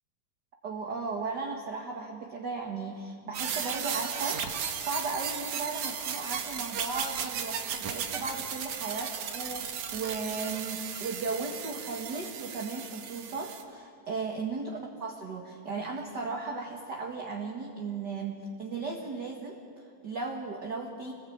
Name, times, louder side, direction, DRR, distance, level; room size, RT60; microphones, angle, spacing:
voice 1, 0.6-21.1, right 4 dB, 40° right, 1 dB, 2.0 m, -36 dB
sound 1, 3.3-13.6, right 7 dB, 75° right, 3.0 m, -35 dB
26.5 x 20.0 x 8.7 m, 2.4 s
omnidirectional pair, 3.4 m